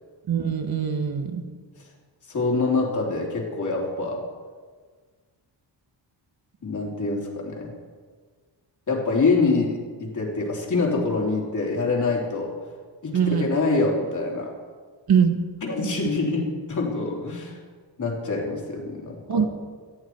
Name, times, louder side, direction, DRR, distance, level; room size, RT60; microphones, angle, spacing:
voice 1, 0.3-1.4 13.1-13.5 15.1-15.4 19.3-19.5, right 7 dB, 55° right, 7 dB, 1.5 m, -22 dB
voice 2, 2.3-4.2 6.6-7.7 8.9-12.6 13.0-14.5 15.6-17.6 18.0-19.5, left 3 dB, 40° left, -2 dB, 3.5 m, -25 dB
18.0 x 14.0 x 4.7 m, 1.5 s
wide cardioid pair, 165°, 44 cm